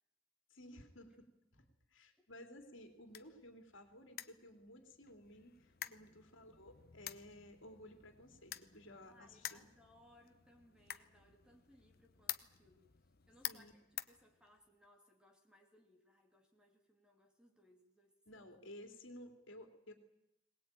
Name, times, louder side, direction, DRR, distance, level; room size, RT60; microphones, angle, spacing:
voice 1, 0.5-9.7 13.4-13.7 18.3-19.9, left 1 dB, 60° left, 6 dB, 3.0 m, -56 dB
sound 1, 2.6-14.9, left 12 dB, 45° left, 0.9 m, -51 dB
voice 2, 9.0-12.9 13.3-18.1, left 1 dB, 5° right, 2 dB, 2.8 m, -67 dB
22.0 x 19.5 x 9.1 m, 0.87 s
head